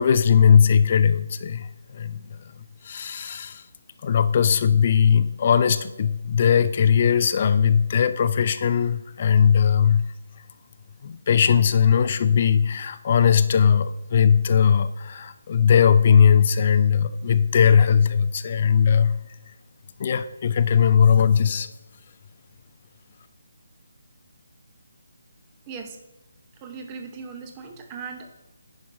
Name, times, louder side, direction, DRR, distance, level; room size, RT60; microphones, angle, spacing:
voice 1, 0.0-2.4 2.8-3.6 4.0-10.1 11.0-19.2 20.0-21.7, left 7 dB, 40° left, 12 dB, 0.4 m, -19 dB
voice 2, 25.7-26.0 26.6-28.4, right 5 dB, 20° right, 5 dB, 0.7 m, -38 dB
9.8 x 5.2 x 2.6 m, 0.98 s
figure-of-eight pair, 150°, 0 cm